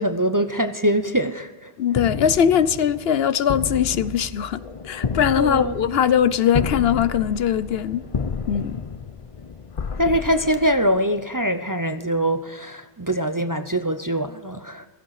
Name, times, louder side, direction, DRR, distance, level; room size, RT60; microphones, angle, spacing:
voice 1, 0.0-1.7 5.4-5.8 10.0-14.9, right 1 dB, 25° right, 0.6 m, -23 dB
voice 2, 1.8-8.0 8.5-8.8, left 9 dB, 70° left, 0.9 m, -21 dB
sound 1, 1.9-11.4, left 5 dB, 40° left, 0.7 m, -31 dB
16.5 x 15.0 x 4.9 m
omnidirectional pair, 1.1 m